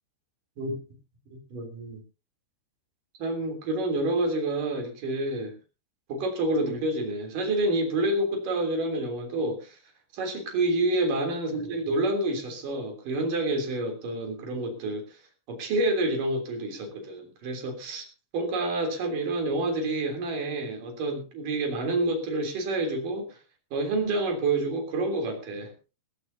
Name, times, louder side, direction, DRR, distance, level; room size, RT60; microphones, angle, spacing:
voice 1, 1.3-2.0 3.2-5.5 6.1-9.8 10.1-15.2 15.5-18.0 18.3-23.4 23.7-25.7, right 2 dB, 45° right, 4 dB, 4.7 m, -28 dB
20.0 x 15.0 x 2.8 m, 0.32 s
omnidirectional pair, 5.6 m